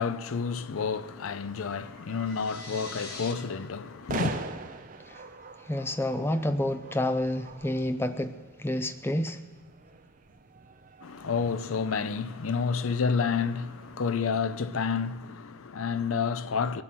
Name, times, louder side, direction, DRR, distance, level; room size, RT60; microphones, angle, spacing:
voice 1, 0.0-4.4 11.0-16.8, left 5 dB, 80° left, 0.5 m, -30 dB
sound 1, 0.7-13.9, right 4 dB, 40° right, 0.7 m, -44 dB
sound 2, 2.2-3.3, left 4 dB, 50° left, 1.5 m, -42 dB
voice 2, 5.7-9.4, left 1 dB, 10° left, 0.4 m, -29 dB
21.5 x 7.6 x 6.0 m
head